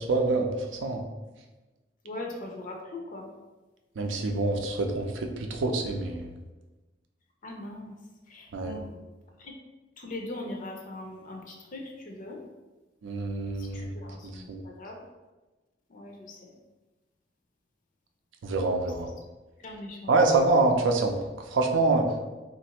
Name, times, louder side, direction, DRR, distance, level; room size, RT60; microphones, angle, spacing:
voice 1, 0.1-1.0 4.0-6.3 8.5-8.7 13.0-13.9 14.5-14.6 18.4-19.1 20.1-21.1 21.5-22.1, right 3 dB, 90° right, 4 dB, 0.4 m, -25 dB
voice 2, 2.0-3.3 7.4-8.0 8.3-9.0 9.4-9.5 10.0-12.4 13.6-15.0 15.9-16.5 19.6-20.1, left 2 dB, 45° left, 1 dB, 0.5 m, -40 dB
3.2 x 2.5 x 2.8 m, 1.2 s
head